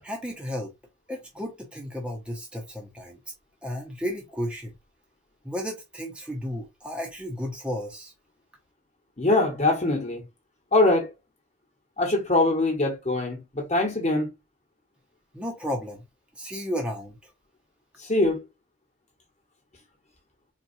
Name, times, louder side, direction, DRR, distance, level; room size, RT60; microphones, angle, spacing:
voice 1, 0.0-0.7 1.1-3.2 3.6-4.7 5.4-8.1 15.3-16.0 16.4-17.3, equal, 5° right, 0.7 m, -33 dB
voice 2, 9.2-10.2 10.7-11.1 12.0-14.3 18.0-18.4, left 2 dB, 35° left, 1.2 m, -23 dB
4.1 x 2.3 x 2.6 m
head